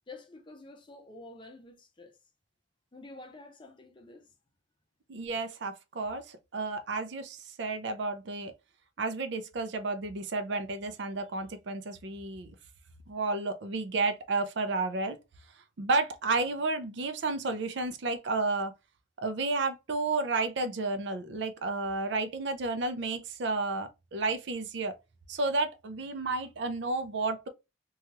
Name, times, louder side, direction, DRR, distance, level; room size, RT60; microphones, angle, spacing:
voice 1, 0.1-2.2 2.9-4.3, left 2 dB, 25° left, 0.5 m, -49 dB
voice 2, 5.1-8.5 9.0-12.5 13.1-15.2 15.8-18.7 19.2-24.9 25.3-27.5, right 3 dB, 65° right, 0.5 m, -31 dB
3.0 x 2.3 x 2.8 m
head